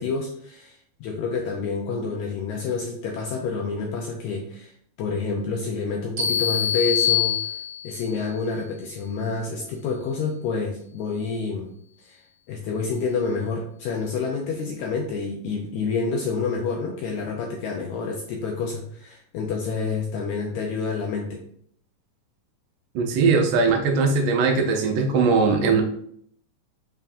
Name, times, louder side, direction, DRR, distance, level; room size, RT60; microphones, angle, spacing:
voice 1, 0.0-4.7 5.0-7.3 7.8-11.7 12.0-12.2 12.5-21.4, left 4 dB, 80° left, 1 dB, 1.7 m, -28 dB
sound 1, 6.2-8.1, left 9 dB, 55° right, 1.2 m, -24 dB
voice 2, 23.0-25.8, right 4 dB, 85° right, 3 dB, 2.2 m, -20 dB
5.5 x 3.5 x 2.5 m, 0.65 s
omnidirectional pair, 3.6 m